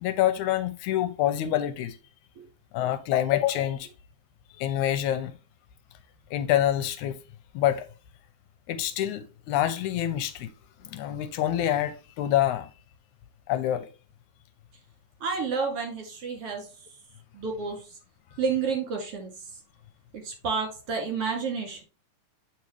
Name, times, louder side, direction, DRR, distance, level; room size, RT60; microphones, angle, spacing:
voice 1, 0.0-2.0 2.7-3.9 4.6-5.3 6.3-7.2 7.5-7.9 8.7-10.5 10.8-12.7 13.5-13.9, left 12 dB, 80° left, 2.0 m, -26 dB
voice 2, 15.2-16.7 17.3-17.9 18.4-19.3 20.1-21.8, right 5 dB, 50° right, 3.1 m, -30 dB
8.4 x 4.6 x 3.0 m
omnidirectional pair, 3.5 m